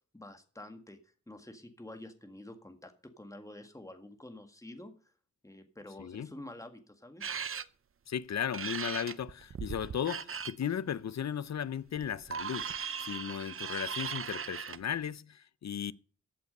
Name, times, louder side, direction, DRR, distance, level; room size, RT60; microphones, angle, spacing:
voice 1, 0.1-5.1 5.4-7.3, left 1 dB, 10° left, 1.8 m, -49 dB
voice 2, 6.0-6.3 8.1-15.9, left 8 dB, 65° left, 0.6 m, -36 dB
sound 1, 7.2-7.6 8.5-10.5 11.9-14.8, right 7 dB, 45° right, 0.6 m, -38 dB
14.5 x 8.4 x 5.4 m
wide cardioid pair, 120°, 30 cm